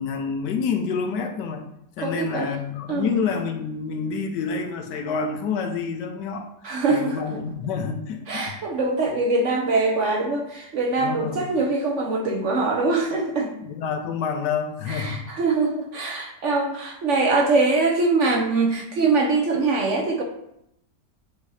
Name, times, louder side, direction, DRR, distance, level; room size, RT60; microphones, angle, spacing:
voice 1, 0.0-1.7 2.0-6.5 6.9-8.6 11.0-11.5 13.6-15.3, left 5 dB, 80° left, 5 dB, 1.4 m, -28 dB
voice 2, 2.0-2.5 2.9-3.2 6.6-7.6 8.3-13.5 14.9-20.2, right 3 dB, 60° right, 1 dB, 0.9 m, -23 dB
8.0 x 2.8 x 4.8 m, 0.79 s
omnidirectional pair, 1.8 m